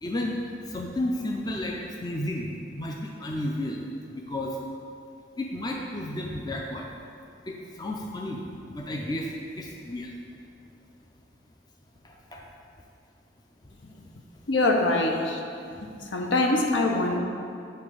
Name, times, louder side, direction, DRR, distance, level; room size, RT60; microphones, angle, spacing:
voice 1, 0.0-0.4 0.7-3.8 4.1-4.6 5.4-6.9 7.5-8.4 8.7-10.1 12.0-12.5 13.6-13.8 15.7-15.8, left 1 dB, 20° left, 0 dB, 0.4 m, -32 dB
voice 2, 14.5-15.4 16.0-17.2, left 2 dB, 75° left, 2 dB, 0.7 m, -23 dB
7.9 x 3.1 x 5.2 m, 2.5 s
head